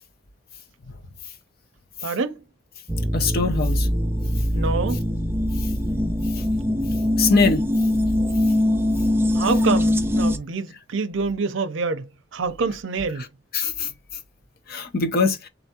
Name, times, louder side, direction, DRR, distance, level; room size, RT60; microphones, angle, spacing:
voice 1, 2.0-2.4 4.5-5.0 9.3-13.3, right 4 dB, 65° right, 0.6 m, -26 dB
sound 1, 2.9-10.4, left 1 dB, 10° right, 0.4 m, -22 dB
voice 2, 3.1-3.9 7.2-7.6 13.5-13.9 14.7-15.5, left 4 dB, 50° left, 0.6 m, -22 dB
3.9 x 3.4 x 2.8 m
head